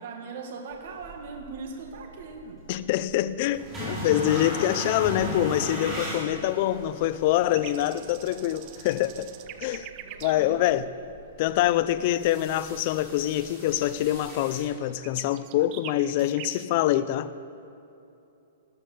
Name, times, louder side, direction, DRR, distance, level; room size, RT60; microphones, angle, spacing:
voice 1, 0.0-2.6 10.0-10.6, right 4 dB, 50° right, 1.8 m, -40 dB
sound 1, 0.7-14.6, equal, 10° right, 4.5 m, -38 dB
voice 2, 2.7-9.3 9.6-9.9 10.2-10.9 11.4-17.3, left 13 dB, 35° left, 0.5 m, -25 dB
sound 2, 7.5-10.4 10.6-10.7 11.0-11.3 11.6-11.7 12.1-12.2 12.5-12.6 12.9-13.0 13.3-13.5 13.8-13.9 14.2-14.5 14.8-16.7, right 11 dB, 30° right, 0.7 m, -45 dB
13.5 x 13.0 x 7.7 m
hypercardioid pair, 170°, 0 cm